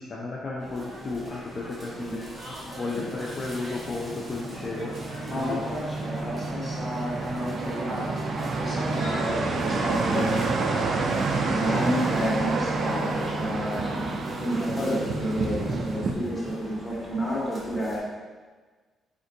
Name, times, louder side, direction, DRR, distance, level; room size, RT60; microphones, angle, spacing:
voice 1, 0.0-5.6, left 3 dB, 40° left, -4 dB, 0.4 m, -34 dB
sound 1, 0.6-18.0, equal, 30° right, 1.2 m, -41 dB
sound 2, 2.7-16.1, right 3 dB, 55° right, 0.4 m, -29 dB
voice 2, 5.3-10.8 11.3-18.0, equal, 15° left, -7 dB, 1.3 m, -31 dB
4.3 x 2.4 x 2.7 m, 1.4 s
cardioid pair, 90°, 0 cm